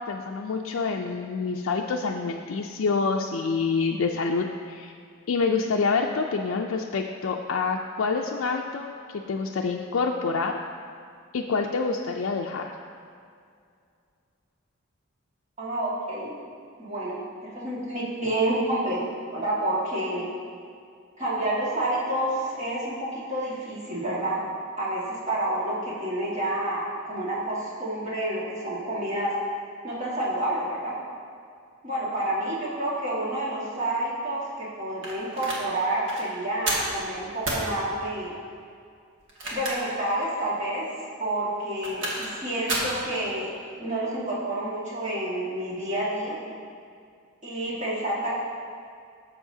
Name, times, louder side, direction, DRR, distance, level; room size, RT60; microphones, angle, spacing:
voice 1, 0.0-4.9 5.3-8.9 9.3-10.6 11.3-12.7, left 4 dB, 75° left, 0 dB, 0.4 m, -27 dB
voice 2, 15.6-16.3 16.8-19.0 19.3-20.3 21.2-24.4 24.8-29.3 29.8-30.9 31.8-38.3 39.5-40.8 41.2-43.5 43.8-46.4 47.4-48.4, right 1 dB, 35° right, -7 dB, 1.8 m, -29 dB
sound 1, 35.0-35.6 36.0-36.2 36.7-36.9 37.4-37.7 39.2-40.0 40.4-40.5 41.6-42.3 42.7-43.0, right 1 dB, 60° right, 1.6 m, -30 dB
12.0 x 7.1 x 2.7 m, 2.3 s
head